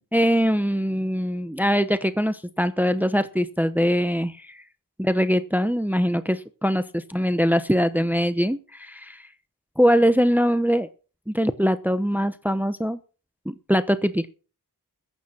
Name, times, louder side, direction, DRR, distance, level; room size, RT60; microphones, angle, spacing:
voice 1, 0.1-4.5 5.0-9.2 9.8-10.9 11.3-13.0 13.5-14.3, equal, 5° right, 11 dB, 0.9 m, -22 dB
15.0 x 9.1 x 6.0 m, 0.36 s
wide cardioid pair, 50°, 39 cm